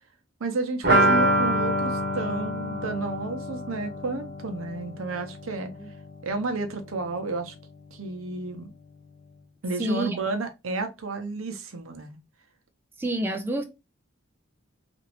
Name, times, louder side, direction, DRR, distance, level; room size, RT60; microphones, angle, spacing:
voice 1, 0.4-5.7 6.2-7.5 7.9-8.7 9.6-12.2, right 3 dB, 85° right, 0.7 m, -31 dB
sound 1, 0.8-6.4 6.7-6.8 7.1-7.2, right 1 dB, 45° right, 0.9 m, -26 dB
voice 2, 9.8-10.2 13.0-13.6, right 1 dB, 10° right, 0.3 m, -28 dB
2.9 x 2.6 x 2.9 m
head